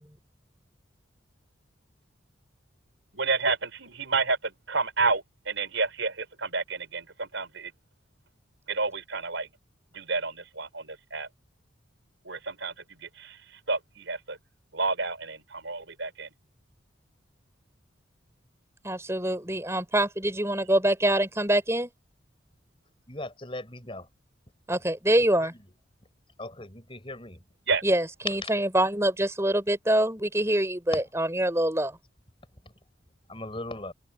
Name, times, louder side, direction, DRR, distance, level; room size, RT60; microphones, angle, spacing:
voice 1, 3.1-7.7 8.7-9.5 9.9-11.3 12.2-12.7 13.2-13.4 13.7-14.4 14.7-16.3 27.7-27.8, right 4 dB, 70° right, 4.8 m, -30 dB
voice 2, 18.8-21.9 24.7-25.5 27.8-32.0, right 1 dB, 15° right, 5.5 m, -25 dB
voice 3, 23.1-24.0 26.4-27.4 33.3-33.9, left 1 dB, 25° left, 6.2 m, -38 dB
head